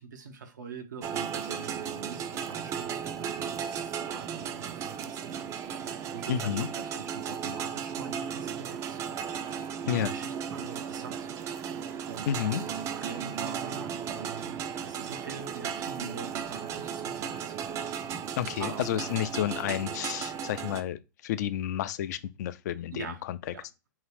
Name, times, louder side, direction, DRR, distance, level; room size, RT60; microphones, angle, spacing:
voice 1, 0.0-9.0 9.8-11.3 12.1-12.7 12.9-17.6 18.2-19.2 22.9-23.2 23.5-23.7, right 5 dB, 80° right, 0.6 m, -44 dB
sound 1, 1.0-20.8, right 8 dB, 30° right, 0.3 m, -35 dB
voice 2, 6.3-6.7 9.9-10.1 12.3-12.6 18.4-23.4, left 11 dB, 65° left, 0.4 m, -31 dB
2.8 x 2.5 x 3.3 m
hypercardioid pair, 110°, 10 cm